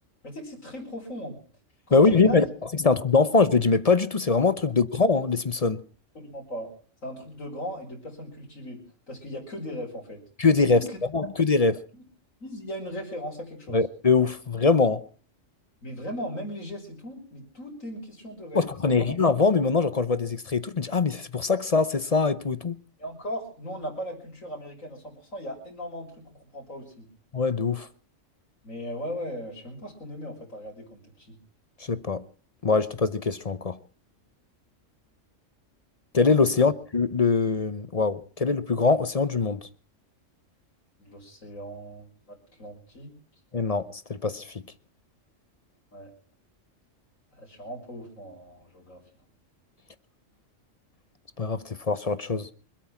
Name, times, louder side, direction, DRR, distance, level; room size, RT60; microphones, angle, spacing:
voice 1, 0.2-1.4 1.9-2.5 4.6-4.7 6.1-6.7 7.0-10.2 10.7-11.0 12.4-13.8 15.8-19.1 23.0-27.1 28.6-31.4 36.5-36.7 41.0-42.1 42.6-43.1 45.9-46.1 47.3-49.0, equal, 85° left, 5.1 m, -38 dB
voice 2, 1.9-2.4 2.8-5.8 10.4-10.8 11.1-11.8 13.7-15.0 18.5-22.8 27.3-27.9 31.8-32.3 32.6-33.8 36.1-39.7 43.5-44.6 51.4-52.5, left 4 dB, 35° left, 0.7 m, -23 dB
25.5 x 8.7 x 6.0 m
omnidirectional pair, 1.3 m